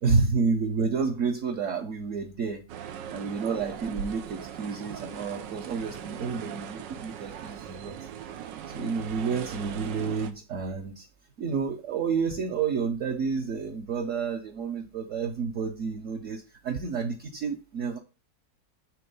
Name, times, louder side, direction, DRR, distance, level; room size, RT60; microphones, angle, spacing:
voice 1, 0.0-2.6 3.1-8.0 8.7-11.1 11.4-18.0, right 5 dB, 55° right, 2 dB, 1.0 m, -30 dB
sound 1, 2.7-10.3, right 9 dB, 85° right, 1.4 m, -40 dB
7.7 x 3.5 x 5.4 m, 0.32 s
omnidirectional pair, 1.9 m